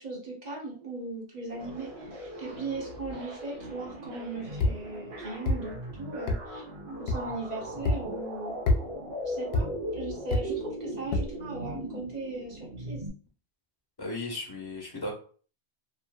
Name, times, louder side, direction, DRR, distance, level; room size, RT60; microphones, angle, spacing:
voice 1, 0.0-6.6 7.0-8.6 9.3-13.0, right 3 dB, 40° right, -2 dB, 1.0 m, -38 dB
sound 1, 1.5-13.1, equal, 85° right, 1.2 m, -39 dB
sound 2, 4.6-4.8 5.5-5.6 6.3-6.4 7.1-7.2 7.9-8.0 8.7-8.8 9.5-9.7 10.3-10.4 11.1-11.3, left 2 dB, 70° left, 0.8 m, -25 dB
voice 2, 14.0-15.1, left 2 dB, 25° left, -1 dB, 0.8 m, -35 dB
2.7 x 2.4 x 2.2 m, 0.41 s
omnidirectional pair, 1.1 m